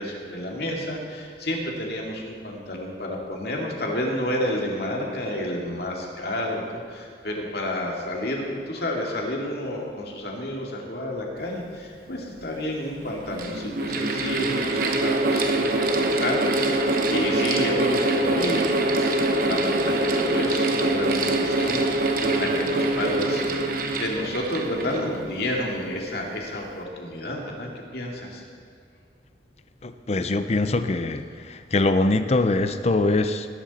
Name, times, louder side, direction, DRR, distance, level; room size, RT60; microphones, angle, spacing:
voice 1, 0.0-28.4, left 1 dB, 60° left, -1 dB, 2.3 m, -30 dB
Mechanical fan, 12.1-12.2 13.0-25.7, right 2 dB, 50° right, 1.0 m, -24 dB
voice 2, 29.8-33.5, left 2 dB, 35° left, 9 dB, 0.5 m, -23 dB
20.5 x 11.0 x 4.2 m, 2.2 s
head